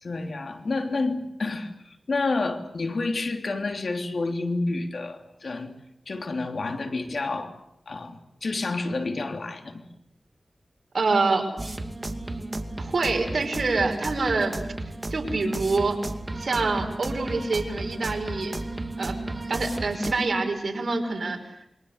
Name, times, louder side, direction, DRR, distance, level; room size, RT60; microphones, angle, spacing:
voice 1, 0.0-5.7 6.1-7.5 7.9-9.9, left 3 dB, 65° left, 6 dB, 3.3 m, -29 dB
voice 2, 10.9-11.5 12.8-14.6 15.1-16.0 16.3-18.6 19.0-19.2 19.5-21.6, right 3 dB, 65° right, 4 dB, 5.5 m, -26 dB
sound 1, 11.6-20.1, right 2 dB, 30° right, 2.4 m, -34 dB
28.0 x 23.5 x 8.2 m, 0.77 s
wide cardioid pair, 75°, 0 cm